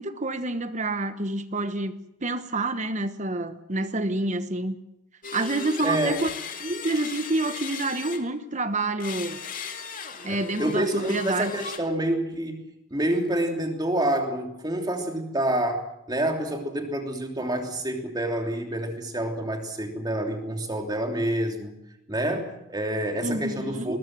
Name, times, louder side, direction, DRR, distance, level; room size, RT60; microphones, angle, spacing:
voice 1, 0.0-4.8 5.3-6.3 6.6-9.4 10.2-11.5 23.2-24.0, right 2 dB, 35° right, 10 dB, 1.2 m, -28 dB
sound 1, 5.2-8.5 9.0-11.8, left 6 dB, 40° left, 2.4 m, -37 dB
voice 2, 5.8-6.2 10.3-12.6 12.9-21.7 22.1-24.0, right 1 dB, 20° right, 3 dB, 3.1 m, -28 dB
20.5 x 20.5 x 7.5 m, 0.84 s
head